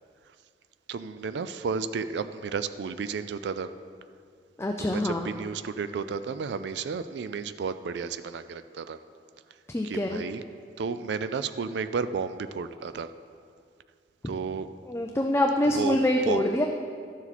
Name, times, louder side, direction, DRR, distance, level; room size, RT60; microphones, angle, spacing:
voice 1, 0.9-3.7 4.8-9.0 9.8-10.4 10.8-13.1 14.2-14.7 15.7-16.0 16.3-16.5, right 5 dB, 70° right, 12 dB, 0.4 m, -32 dB
voice 2, 4.6-5.3 9.7-10.2 14.9-16.7, left 1 dB, 15° left, 2 dB, 0.4 m, -25 dB
12.0 x 7.1 x 4.1 m, 2.2 s
head